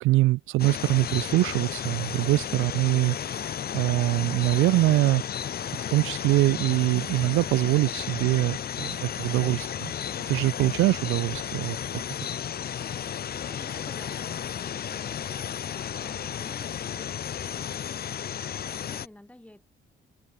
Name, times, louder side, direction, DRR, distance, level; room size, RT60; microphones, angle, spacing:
voice 1, 0.0-5.2 5.7-9.9 10.3-11.8, right 19 dB, 90° right, 0.4 m, -24 dB
sound 1, 0.6-19.1, left 9 dB, 50° left, 1.0 m, -33 dB
voice 2, 18.5-19.6, left 1 dB, 5° left, 4.4 m, -51 dB
cardioid pair, 90°, 20 cm